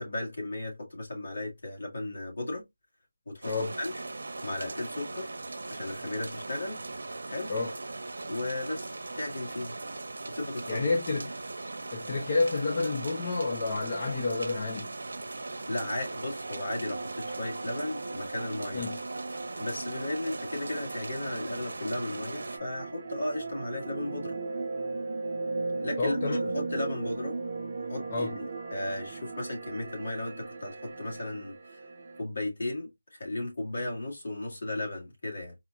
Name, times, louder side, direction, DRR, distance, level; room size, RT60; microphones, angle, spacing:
voice 1, 0.0-2.6 3.3-3.5 3.8-3.9 4.4-5.3 5.7-6.8 7.3-7.5 8.3-9.7 10.3-10.9 15.7-18.9 19.6-24.4 25.8-27.4 27.9-28.5 28.7-31.8 32.2-35.6, left 2 dB, 55° left, 1.9 m, -35 dB
sound 1, 3.4-22.6, right 2 dB, 65° right, 1.0 m, -39 dB
voice 2, 10.7-11.3 11.9-14.9 18.7-19.0 26.0-26.5 28.1-28.4, left 3 dB, 25° left, 0.8 m, -29 dB
sound 2, 15.3-32.2, right 3 dB, 35° right, 0.6 m, -38 dB
4.2 x 2.8 x 2.4 m
figure-of-eight pair, 170°, 0 cm